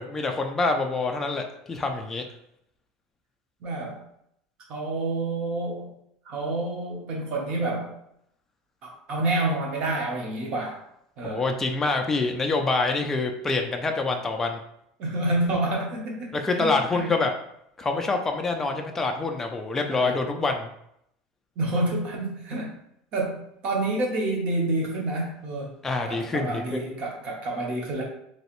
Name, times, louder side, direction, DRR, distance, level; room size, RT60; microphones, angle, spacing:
voice 1, 0.0-2.2 11.2-14.6 16.4-17.3 17.8-20.7 25.8-26.8, left 3 dB, 10° left, 3 dB, 0.3 m, -26 dB
voice 2, 3.6-4.0 4.7-5.9 6.2-8.0 8.8-10.8 11.2-11.5 15.0-17.2 19.9-20.2 21.6-22.7 23.1-25.7 26.1-28.0, right 2 dB, 40° right, -1 dB, 0.9 m, -28 dB
3.1 x 2.9 x 2.9 m, 0.74 s
cardioid pair, 165°, 3 cm